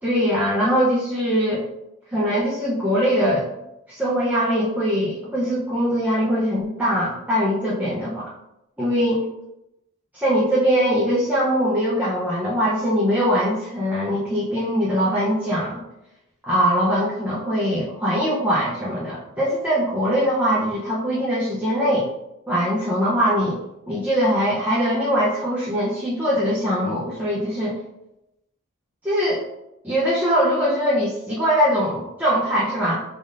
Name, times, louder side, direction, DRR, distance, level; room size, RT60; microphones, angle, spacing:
voice 1, 0.0-1.7 2.1-3.5 3.9-8.3 8.8-9.2 10.1-15.8 16.4-22.1 22.5-23.6 23.9-27.8 29.0-29.4 29.8-33.0, equal, 5° right, -8 dB, 0.7 m, -22 dB
5.3 x 3.5 x 2.5 m, 0.88 s
head